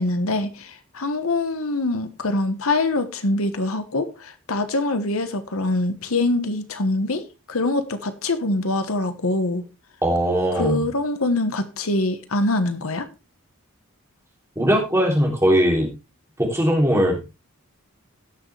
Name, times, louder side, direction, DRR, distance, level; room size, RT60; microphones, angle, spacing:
voice 1, 0.0-9.6 10.5-13.1, left 2 dB, 70° left, 1.2 m, -24 dB
voice 2, 10.0-10.8 14.6-15.9 16.4-17.2, equal, 10° right, 3.2 m, -19 dB
17.5 x 6.5 x 3.3 m
head